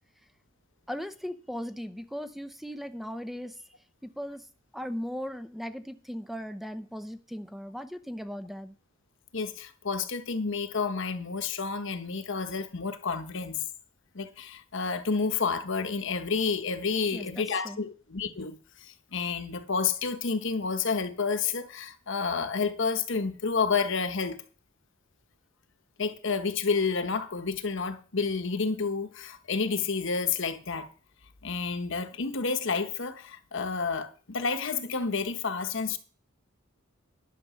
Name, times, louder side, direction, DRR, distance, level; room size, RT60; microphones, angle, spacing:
voice 1, 0.9-3.5 4.0-4.4 4.7-8.7 17.1-17.8, equal, ahead, 0.6 m, -38 dB
voice 2, 9.3-13.6 14.1-24.4 26.0-30.9 31.4-36.0, left 5 dB, 65° left, 1.1 m, -30 dB
11.0 x 6.8 x 6.3 m
head